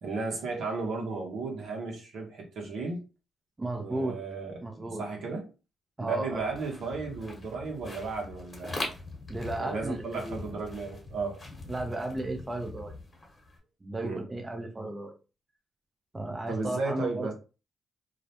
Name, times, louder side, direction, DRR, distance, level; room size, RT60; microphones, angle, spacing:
voice 1, 0.0-3.0 3.8-5.5 6.0-8.9 9.6-11.4 14.0-14.2 16.5-17.3, right 4 dB, 70° right, 0.8 m, -34 dB
voice 2, 3.6-4.2 4.6-5.0 6.0-6.4 9.3-10.4 11.7-12.9 13.8-15.1 16.1-17.3, right 2 dB, 25° right, 0.6 m, -34 dB
sound 1, 6.3-13.6, left 2 dB, 30° left, 1.1 m, -42 dB
2.3 x 2.0 x 2.8 m
supercardioid pair, 65°, 0 cm